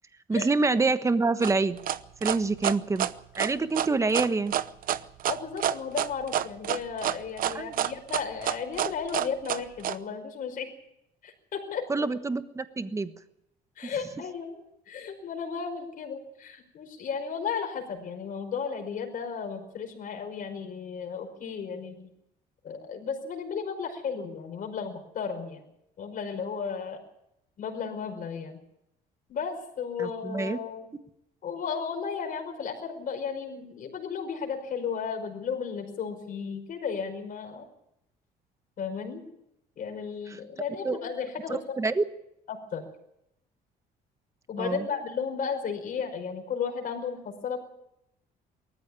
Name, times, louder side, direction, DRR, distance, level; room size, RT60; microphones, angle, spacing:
voice 1, 0.3-1.8 2.2-3.1 3.4-4.5 7.5-7.7 11.9-13.1 30.0-30.6 40.8-41.0 41.5-42.0 44.6-44.8, right 3 dB, 15° right, 12 dB, 1.3 m, -26 dB
sound 1, 1.4-10.0, right 11 dB, 60° right, 0.8 m, -28 dB
voice 2, 5.3-10.7 11.2-12.1 13.8-22.1 22.6-25.6 26.0-27.0 27.6-28.6 29.3-30.9 31.4-37.6 38.8-39.2 39.8-41.6 42.5-42.9 44.5-47.6, left 6 dB, 55° left, 4 dB, 5.3 m, -34 dB
19.0 x 14.0 x 9.8 m, 0.80 s
cardioid pair, 110°, 17 cm